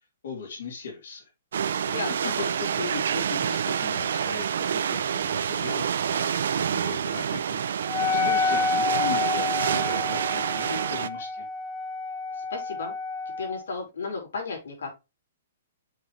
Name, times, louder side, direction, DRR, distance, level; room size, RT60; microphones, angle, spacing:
voice 1, 0.2-1.2 2.2-7.8 8.1-11.5, left 5 dB, 55° left, 3.2 m, -38 dB
sound 1, 1.5-11.1, right 8 dB, 60° right, 0.5 m, -27 dB
voice 2, 1.9-2.4 12.4-12.9 13.4-14.9, left 4 dB, 90° left, 4.7 m, -34 dB
Wind instrument woodwind instrument, 7.9-13.6, left 4 dB, 20° left, 0.8 m, -29 dB
7.1 x 5.7 x 3.3 m
hypercardioid pair, 180°, 0 cm